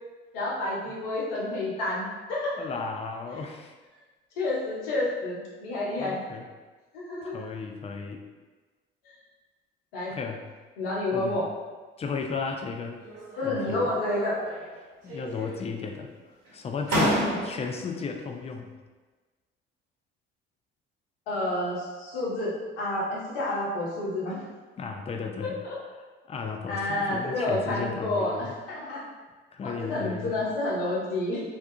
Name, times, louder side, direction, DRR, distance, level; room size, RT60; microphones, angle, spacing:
voice 1, 0.3-2.6 4.4-6.2 6.9-7.5 9.9-10.1 10.8-11.4 13.4-14.4 17.1-17.4 21.3-24.4 25.4-25.8 26.7-29.0 29.6-31.4, left 2 dB, 80° left, -5 dB, 0.7 m, -29 dB
voice 2, 2.6-3.7 6.0-6.5 7.2-8.2 10.1-10.4 11.1-11.4 12.0-13.0 13.4-13.9 15.0-16.1 16.5-18.7 24.8-25.6 26.3-28.5 29.5-30.4, left 5 dB, 20° left, 3 dB, 0.3 m, -34 dB
sound 1, 13.0-13.6 14.0-14.8 15.1-15.8 16.5-16.6 16.9-17.8, right 1 dB, 55° right, 1.0 m, -30 dB
2.4 x 2.3 x 2.6 m, 1.3 s
hypercardioid pair, 50°, 29 cm